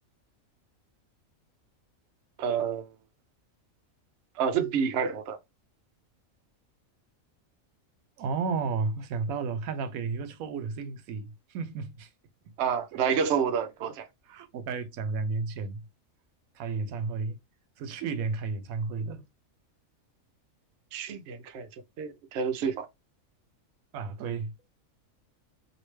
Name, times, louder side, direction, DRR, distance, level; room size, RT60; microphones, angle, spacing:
voice 1, 2.4-2.9 4.4-5.4 12.6-14.1 20.9-21.7 22.0-22.9, right 7 dB, 65° right, 0.8 m, -28 dB
voice 2, 8.2-12.1 12.9-13.3 14.3-15.8 16.6-17.4 17.8-19.2 23.9-24.5, right 4 dB, 90° right, 1.0 m, -33 dB
3.1 x 2.8 x 3.1 m
omnidirectional pair, 1.4 m